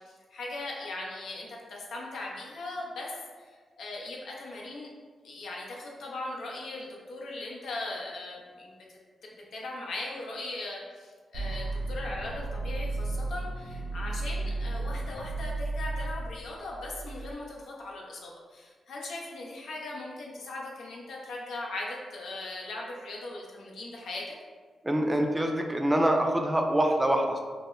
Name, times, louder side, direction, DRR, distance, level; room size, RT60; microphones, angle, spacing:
voice 1, 0.1-3.1 3.4-3.5 3.8-4.9 5.2-8.7 9.2-24.3, left 2 dB, 75° left, -2 dB, 0.5 m, -39 dB
sound 1, 11.3-17.3, right 2 dB, 85° right, 0.5 m, -34 dB
voice 2, 24.8-27.4, right 1 dB, 15° right, 2 dB, 0.4 m, -25 dB
2.1 x 2.0 x 3.6 m, 1.5 s
supercardioid pair, 55°, 0 cm